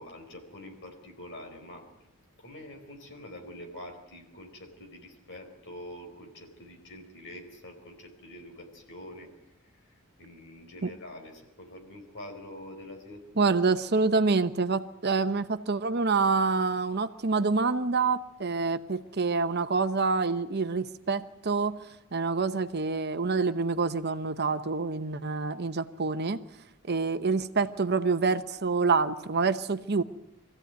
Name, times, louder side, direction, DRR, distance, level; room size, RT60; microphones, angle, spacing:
voice 1, 0.0-1.9 2.4-9.3 10.2-13.5, left 1 dB, 55° left, 3 dB, 4.6 m, -45 dB
voice 2, 13.4-21.8 22.1-26.4 26.9-30.0, right 4 dB, 50° right, 11 dB, 0.8 m, -27 dB
23.5 x 15.5 x 9.2 m, 0.86 s
head